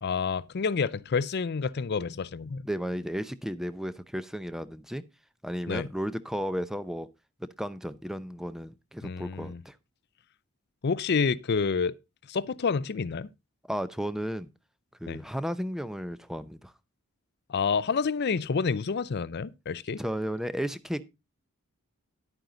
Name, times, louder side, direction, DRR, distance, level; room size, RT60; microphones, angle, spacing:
voice 1, 0.0-2.6 5.7-5.9 9.0-9.6 10.8-11.9 12.3-13.3 15.1-15.2 17.5-20.0, left 5 dB, 50° left, 0.5 m, -28 dB
voice 2, 2.6-5.0 5.4-7.1 7.4-9.8 13.7-14.5 15.0-16.7 20.0-21.0, equal, ahead, 0.6 m, -34 dB
11.0 x 9.0 x 3.9 m
head